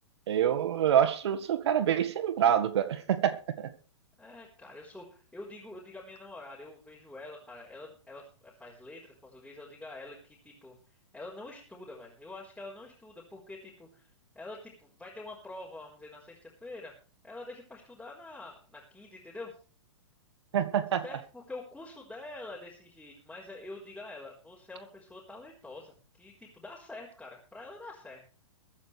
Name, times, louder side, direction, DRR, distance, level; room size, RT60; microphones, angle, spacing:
voice 1, 0.3-3.7 20.5-21.0, right 9 dB, 60° right, 9 dB, 1.8 m, -26 dB
voice 2, 4.2-10.8 11.1-14.1 14.3-16.9 17.2-19.5 21.0-28.2, left 2 dB, 5° left, -6 dB, 4.3 m, -46 dB
22.5 x 9.5 x 3.5 m, 0.38 s
hypercardioid pair, 115°, 15 cm